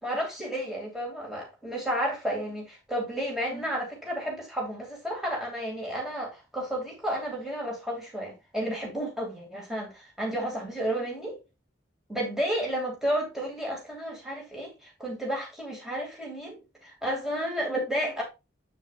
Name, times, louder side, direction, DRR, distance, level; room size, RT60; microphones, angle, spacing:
voice 1, 0.0-11.4 12.1-18.2, equal, ahead, 2.6 m, -32 dB
8.0 x 6.9 x 2.5 m
head